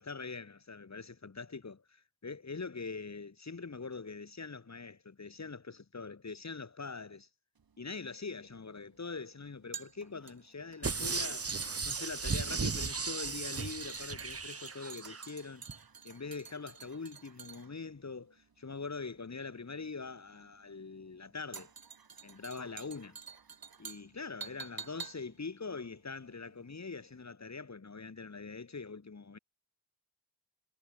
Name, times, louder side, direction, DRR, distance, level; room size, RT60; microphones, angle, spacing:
voice 1, 0.0-7.3 7.8-11.5 11.8-15.6 16.0-21.7 22.2-23.2 23.8-29.4, left 4 dB, 45° left, 3.2 m, -43 dB
sound 1, 7.6-26.9 27.1-27.3, right 6 dB, 65° right, 4.1 m, -50 dB
sound 2, 10.8-15.3 15.7-15.8, right 4 dB, 35° right, 1.6 m, -36 dB
cardioid pair, 60°, 39 cm